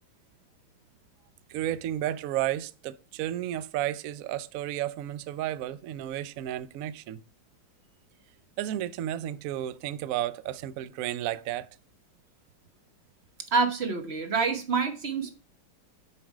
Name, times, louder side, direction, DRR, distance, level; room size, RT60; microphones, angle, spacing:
voice 1, 1.5-7.2 8.6-11.7, right 12 dB, 80° right, 0.7 m, -32 dB
voice 2, 13.5-15.3, right 4 dB, 45° right, 1.0 m, -27 dB
7.2 x 5.1 x 4.8 m
omnidirectional pair, 2.0 m